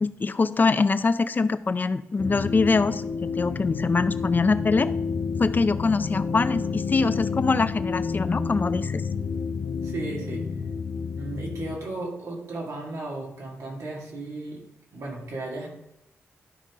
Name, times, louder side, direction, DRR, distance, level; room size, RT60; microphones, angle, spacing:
voice 1, 0.0-4.9 5.4-9.1, left 4 dB, 35° left, 12 dB, 0.5 m, -23 dB
sound 1, 2.2-11.8, left 5 dB, 85° left, 0.7 m, -30 dB
voice 2, 9.8-10.5 11.1-14.6 14.9-15.7, right 2 dB, 90° right, -2 dB, 2.3 m, -35 dB
12.0 x 5.4 x 3.7 m, 0.81 s
wide cardioid pair, 100°, 5 cm